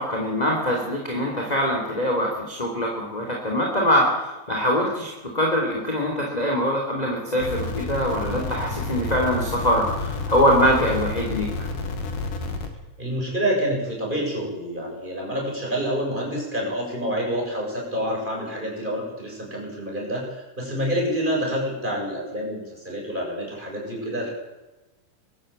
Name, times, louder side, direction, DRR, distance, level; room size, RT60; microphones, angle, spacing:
voice 1, 0.0-11.5, equal, 10° left, 0 dB, 3.4 m, -23 dB
sound 1, 7.4-12.7, left 3 dB, 80° left, 3.9 m, -30 dB
voice 2, 13.0-24.3, equal, 15° right, -2 dB, 7.3 m, -27 dB
22.5 x 13.0 x 9.0 m, 1.1 s
omnidirectional pair, 3.7 m